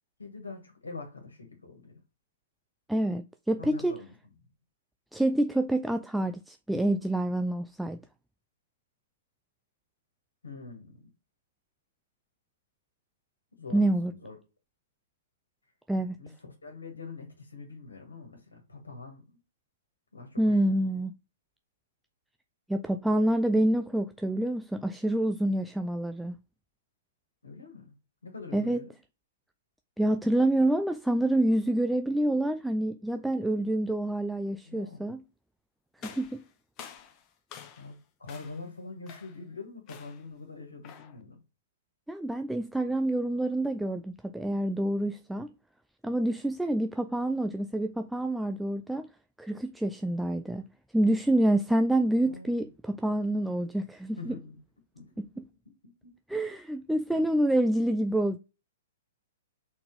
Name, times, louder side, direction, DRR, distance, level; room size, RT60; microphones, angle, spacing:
voice 1, 0.2-2.0 3.6-4.1 10.4-11.1 13.6-14.4 16.2-19.4 20.1-21.0 27.4-27.9 28.2-28.9 34.6-35.1 37.8-41.4 52.2-52.7 54.2-54.6 54.9-55.1 55.7-56.5 57.1-57.4, left 4 dB, 75° left, 1.9 m, -44 dB
voice 2, 2.9-3.9 5.1-8.0 13.7-14.1 15.9-16.2 20.4-21.1 22.7-26.4 28.5-28.8 30.0-35.2 36.0-36.4 42.1-45.5 46.0-49.1 49.4-50.6 50.9-54.3 55.2-55.4 56.3-58.4, right 1 dB, 5° right, 0.3 m, -27 dB
sound 1, 36.0-38.0 38.3-38.7 39.1-39.5 39.9-40.3 40.8-41.2, left 8 dB, 30° left, 1.0 m, -48 dB
4.4 x 4.0 x 5.4 m
figure-of-eight pair, 110°, 0 cm